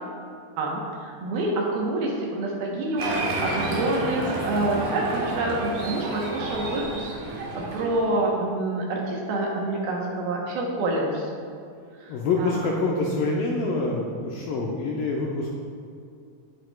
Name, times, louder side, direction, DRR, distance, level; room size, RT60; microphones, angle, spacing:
voice 1, 0.6-3.0 3.5-11.3 12.4-12.5, right 2 dB, 70° right, -2 dB, 2.7 m, -27 dB
Applause, 3.0-8.0, right 2 dB, 90° right, 3.7 m, -30 dB
voice 2, 12.1-15.5, left 3 dB, 85° left, -2 dB, 2.1 m, -26 dB
16.0 x 6.9 x 2.3 m, 2.3 s
omnidirectional pair, 4.8 m